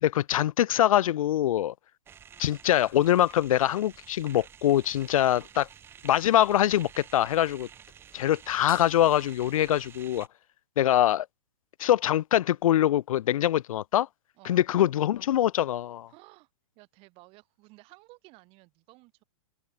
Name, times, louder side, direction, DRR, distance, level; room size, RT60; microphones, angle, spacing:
voice 1, 0.0-1.7 2.4-5.7 6.0-7.7 8.1-10.3 10.8-11.3 11.8-14.1 14.5-16.1, left 12 dB, 80° left, 0.4 m, -24 dB
sound 1, 2.1-10.3, right 8 dB, 15° right, 0.7 m, -50 dB
voice 2, 16.1-16.5 16.7-19.2, right 24 dB, 35° right, 4.7 m, -55 dB
open air
hypercardioid pair, 150°, 17 cm